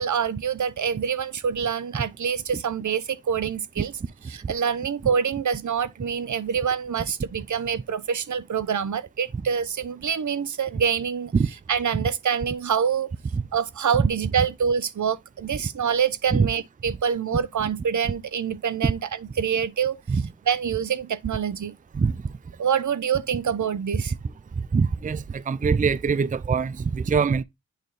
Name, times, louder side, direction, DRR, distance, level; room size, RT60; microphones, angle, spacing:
voice 1, 0.0-3.9 4.3-11.3 11.7-13.1 13.5-19.0 19.4-20.0 20.5-21.7 22.6-24.1, right 7 dB, 75° right, 0.7 m, -26 dB
voice 2, 24.6-27.4, right 5 dB, 25° right, 0.4 m, -23 dB
9.0 x 4.0 x 3.2 m
wide cardioid pair, 70°, 30 cm